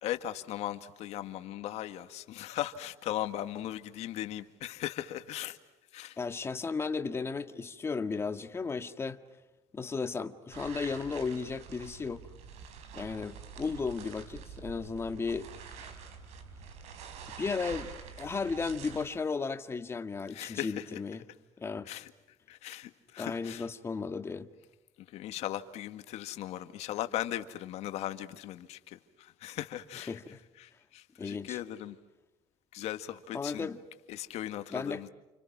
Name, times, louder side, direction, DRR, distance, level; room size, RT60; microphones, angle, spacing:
voice 1, 0.0-5.6 5.9-6.2 20.3-21.0 21.9-22.1 22.5-23.7 25.1-30.2 30.6-32.0 32.7-33.7 34.1-35.1, left 13 dB, 60° left, 2.0 m, -38 dB
voice 2, 6.2-9.2 9.7-12.3 12.9-15.8 17.4-21.2 21.6-21.9 23.2-24.5 30.1-30.4 31.2-31.6 33.3-33.8 34.7-35.0, left 4 dB, 20° left, 1.8 m, -35 dB
sound 1, 10.5-19.0, right 6 dB, 65° right, 4.7 m, -46 dB
30.0 x 29.5 x 6.1 m
cardioid pair, 130°, 12 cm